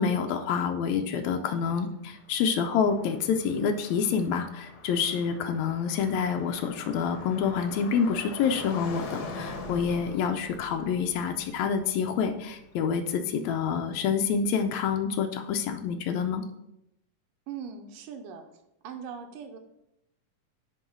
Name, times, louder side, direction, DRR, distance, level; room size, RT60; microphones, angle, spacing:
voice 1, 0.0-16.4, left 6 dB, 85° left, 5 dB, 1.6 m, -27 dB
Car passing by, 1.7-13.7, left 3 dB, 70° left, 1.3 m, -43 dB
voice 2, 17.5-18.4 18.8-19.6, right 7 dB, 90° right, 5 dB, 2.3 m, -40 dB
9.2 x 3.1 x 5.9 m, 0.84 s
omnidirectional pair, 3.8 m